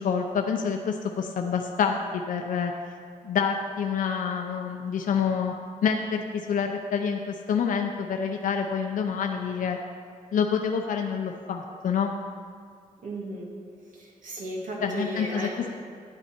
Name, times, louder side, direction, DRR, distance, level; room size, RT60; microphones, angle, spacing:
voice 1, 0.0-2.7 3.2-5.5 5.8-9.8 10.3-12.1 14.8-15.7, left 6 dB, 80° left, 3 dB, 0.7 m, -27 dB
voice 2, 13.0-13.5 13.9-15.6, right 1 dB, 75° right, -2 dB, 2.1 m, -35 dB
10.5 x 9.9 x 4.4 m, 2.2 s
wide cardioid pair, 125°, 14 cm